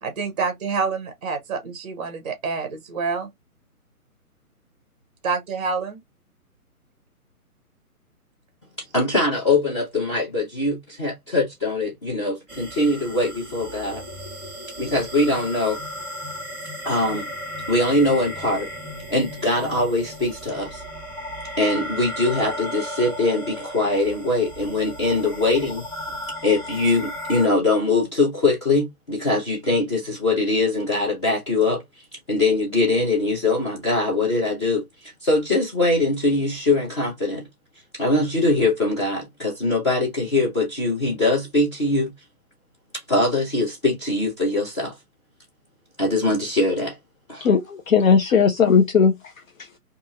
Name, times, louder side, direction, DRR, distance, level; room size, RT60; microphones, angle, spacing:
voice 1, 0.0-3.3 5.2-6.0, right 5 dB, 25° right, 0.6 m, -27 dB
voice 2, 8.9-14.0 14.8-15.8 16.8-17.3 17.7-18.7 19.1-20.8 21.6-25.8 26.4-31.8 32.3-37.4 37.9-42.1 43.1-44.9 46.0-47.0 47.3-47.5, left 2 dB, 20° left, 0.6 m, -22 dB
sound 1, 12.5-27.5, equal, ahead, 1.1 m, -35 dB
voice 3, 47.4-49.3 49.6-49.7, left 6 dB, 60° left, 0.6 m, -18 dB
2.6 x 2.4 x 2.7 m
figure-of-eight pair, 135°, 45 cm